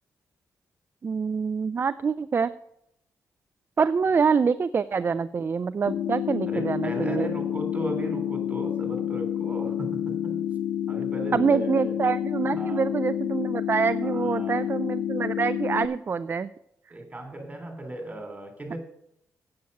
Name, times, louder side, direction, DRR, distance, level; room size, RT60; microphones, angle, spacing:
voice 1, 1.0-2.5 3.8-7.3 11.3-16.5, right 5 dB, 40° right, 14 dB, 0.3 m, -25 dB
sound 1, 5.9-15.9, left 10 dB, 90° left, 0.5 m, -29 dB
voice 2, 6.5-10.4 10.9-12.0 12.4-12.9 14.0-14.6 15.6-15.7 16.9-18.8, right 1 dB, 25° right, 4 dB, 3.1 m, -36 dB
8.2 x 7.9 x 6.5 m, 0.77 s
cardioid pair, 80°, 6 cm